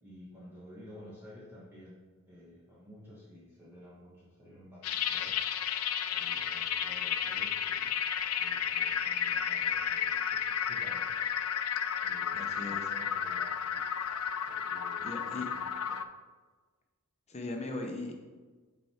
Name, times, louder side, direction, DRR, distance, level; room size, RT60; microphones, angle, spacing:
voice 1, 0.0-2.0 2.2-5.3 6.1-8.0 8.4-11.3 12.0-13.9 14.4-16.0, equal, 10° right, -8 dB, 1.2 m, -52 dB
sound 1, 4.8-16.0, left 8 dB, 75° left, 0.4 m, -32 dB
voice 2, 12.3-12.8 15.0-15.5 17.3-18.1, left 2 dB, 30° left, 3 dB, 0.8 m, -38 dB
6.9 x 4.5 x 4.4 m, 1.4 s
head